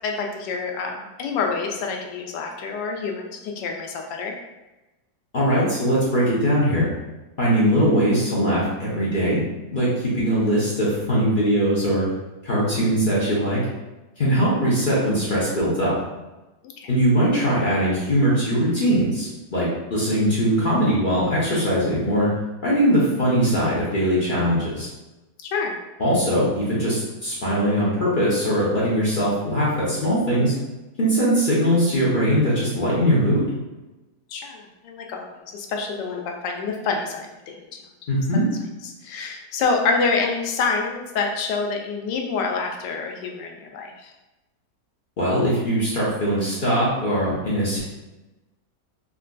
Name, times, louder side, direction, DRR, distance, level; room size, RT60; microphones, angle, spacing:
voice 1, 0.0-4.3 16.8-16.9 25.4-25.7 34.3-37.6 38.8-44.1, left 4 dB, 85° left, 2 dB, 1.2 m, -27 dB
voice 2, 5.3-6.9 7.4-9.4 9.7-12.1 12.4-13.6 14.2-15.9 16.9-22.3 22.6-24.9 26.0-30.5 31.0-33.4 38.1-38.5 45.2-47.8, equal, 55° left, -8 dB, 0.5 m, -21 dB
3.7 x 2.5 x 2.2 m, 1.0 s
omnidirectional pair, 1.8 m